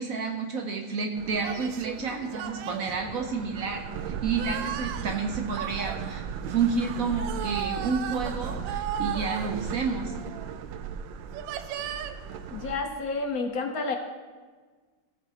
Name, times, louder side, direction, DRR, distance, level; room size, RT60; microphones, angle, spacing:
voice 1, 0.0-10.1, right 5 dB, 60° right, 3 dB, 1.0 m, -30 dB
sound 1, 1.2-12.8, right 7 dB, 90° right, 1.3 m, -35 dB
voice 2, 12.5-14.0, left 3 dB, 60° left, 5 dB, 1.1 m, -30 dB
17.0 x 7.5 x 2.8 m, 1.5 s
omnidirectional pair, 2.0 m